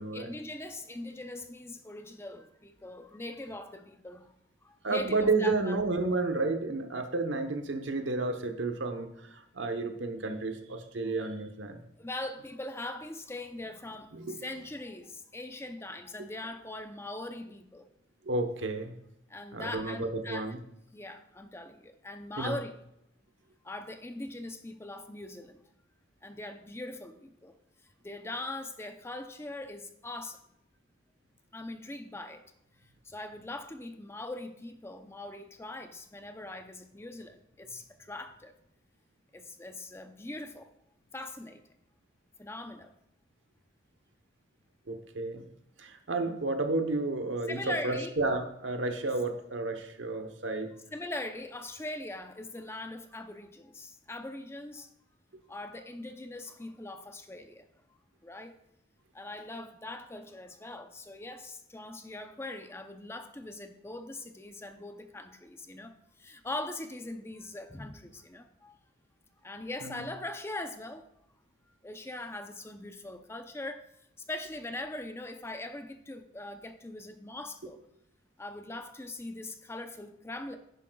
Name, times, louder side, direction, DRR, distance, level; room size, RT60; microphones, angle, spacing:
voice 1, 0.1-4.3 4.6-5.8 12.0-17.9 19.3-20.5 20.9-22.8 23.6-25.7 26.2-27.5 28.0-30.4 31.5-32.4 33.0-38.5 39.3-40.7 41.1-41.6 42.4-42.9 47.5-48.2 50.9-54.9 55.5-57.6 58.2-58.5 59.1-68.8 69.4-71.1 71.8-73.8 74.3-77.8 78.4-80.6, left 2 dB, 15° left, 0.6 m, -41 dB
voice 2, 4.8-11.8 14.1-14.4 18.3-19.0 19.5-20.6 22.4-22.5 44.9-45.4 45.8-50.7 69.8-70.0, right 3 dB, 80° right, 1.0 m, -31 dB
10.5 x 10.0 x 2.3 m
head